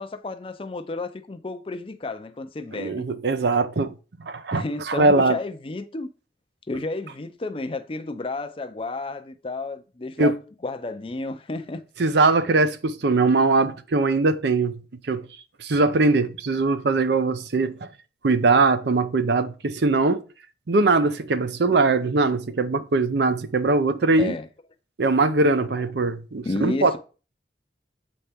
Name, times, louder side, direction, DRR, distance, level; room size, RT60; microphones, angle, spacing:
voice 1, 0.0-3.0 4.5-6.1 6.7-11.8 24.2-24.5 25.7-25.8 26.4-27.0, left 2 dB, 30° left, 0.5 m, -32 dB
voice 2, 2.8-3.9 4.2-5.4 10.2-10.3 12.0-14.7 15.1-15.2 15.6-17.8 18.2-20.2 20.7-24.3 25.0-27.0, right 3 dB, 65° right, 0.6 m, -21 dB
7.6 x 4.3 x 3.5 m
head